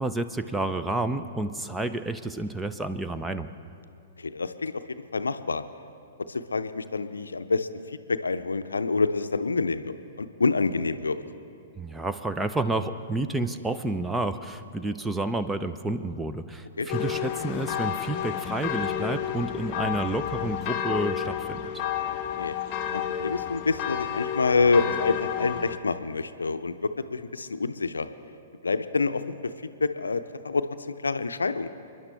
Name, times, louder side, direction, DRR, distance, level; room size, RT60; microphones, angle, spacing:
voice 1, 0.0-3.5 11.8-21.7, right 2 dB, 5° right, 9 dB, 0.6 m, -30 dB
voice 2, 4.2-4.8 5.1-5.6 6.3-11.2 16.8-16.9 22.4-22.5 22.9-28.1 28.6-30.7 31.0-31.7, left 4 dB, 70° left, 10 dB, 0.6 m, -27 dB
sound 1, 16.9-25.8, left 10 dB, 35° left, 0.8 m, -31 dB
29.5 x 10.5 x 3.4 m, 2.5 s
figure-of-eight pair, 110°, 0 cm